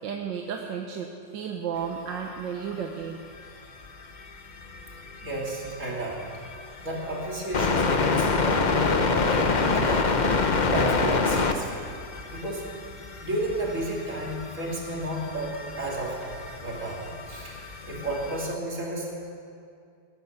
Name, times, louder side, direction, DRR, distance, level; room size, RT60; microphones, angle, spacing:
voice 1, 0.0-3.2, right 7 dB, 85° right, 2 dB, 1.6 m, -33 dB
sound 1, 2.8-2.9 3.4-3.5 3.8-18.5, left 4 dB, 50° left, 0.5 m, -28 dB
voice 2, 5.2-6.2 6.8-10.1 10.7-11.8 12.3-12.6 13.2-17.6 17.8-19.1, right 1 dB, 45° right, -3 dB, 3.1 m, -32 dB
18.0 x 11.0 x 6.8 m, 2.4 s
omnidirectional pair, 2.0 m